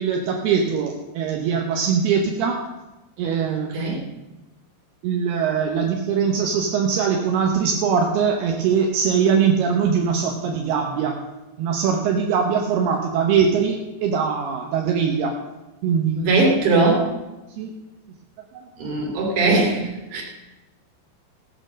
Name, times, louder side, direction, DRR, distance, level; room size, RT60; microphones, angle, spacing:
voice 1, 0.0-2.6 3.2-4.0 5.0-11.2 11.6-15.4 15.8-16.3 17.6-17.7 18.5-18.7, right 6 dB, 75° right, 1 dB, 2.9 m, -22 dB
voice 2, 16.2-17.1 18.8-20.2, right 3 dB, 35° right, -1 dB, 3.5 m, -20 dB
16.5 x 8.9 x 6.3 m, 1.1 s
omnidirectional pair, 4.9 m